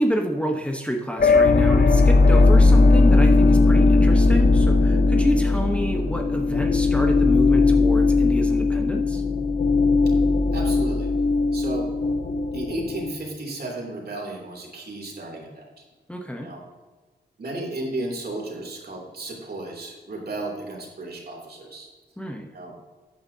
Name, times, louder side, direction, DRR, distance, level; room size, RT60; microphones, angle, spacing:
voice 1, 0.0-9.2 16.1-16.5 22.2-22.5, equal, 5° left, 2 dB, 1.1 m, -28 dB
sound 1, 1.2-13.1, left 3 dB, 55° left, 0.9 m, -18 dB
voice 2, 10.5-11.1 11.5-11.9 12.5-15.8 16.4-16.6 17.4-21.9 22.5-22.7, right 2 dB, 65° right, -1 dB, 3.1 m, -34 dB
13.5 x 9.1 x 2.8 m, 1.4 s
wide cardioid pair, 85°, 18 cm